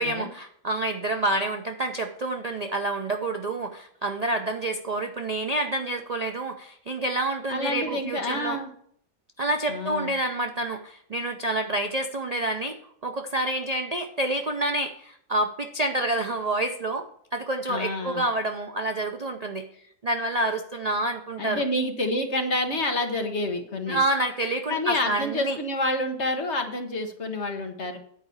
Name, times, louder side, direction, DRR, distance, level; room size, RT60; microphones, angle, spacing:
voice 1, 0.0-8.6 9.4-12.7 13.0-17.0 17.3-19.7 20.0-21.6 23.9-25.6, right 1 dB, 80° right, 4 dB, 0.3 m, -28 dB
voice 2, 7.5-8.7 9.7-10.1 17.7-18.2 21.4-24.0 24.7-28.0, left 1 dB, 50° left, 5 dB, 1.4 m, -28 dB
9.3 x 4.9 x 6.9 m, 0.67 s
omnidirectional pair, 1.6 m